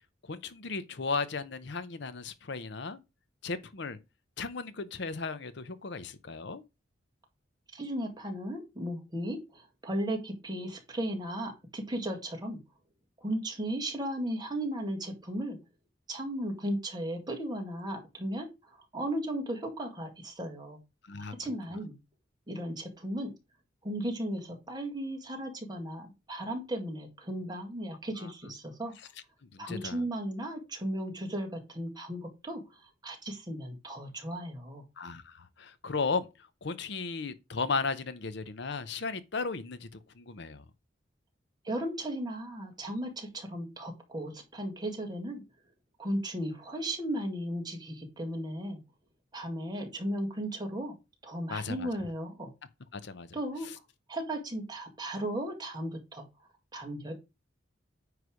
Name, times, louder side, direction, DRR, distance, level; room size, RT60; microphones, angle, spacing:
voice 1, 0.3-3.0 3.4-4.0 4.4-6.6 21.1-21.3 21.7-21.8 28.2-28.3 29.5-30.1 35.0-36.3 36.6-40.6 51.5-51.9 52.9-53.3, left 4 dB, 65° left, 0.7 m, -35 dB
voice 2, 7.7-12.6 13.2-15.6 16.1-20.8 21.4-22.0 22.5-23.3 23.8-28.9 29.6-34.8 41.6-45.4 46.0-48.8 49.3-50.9 51.2-52.5 53.3-53.7 54.1-56.2 56.7-57.1, right 1 dB, 20° right, 1.9 m, -36 dB
9.5 x 3.3 x 6.2 m
head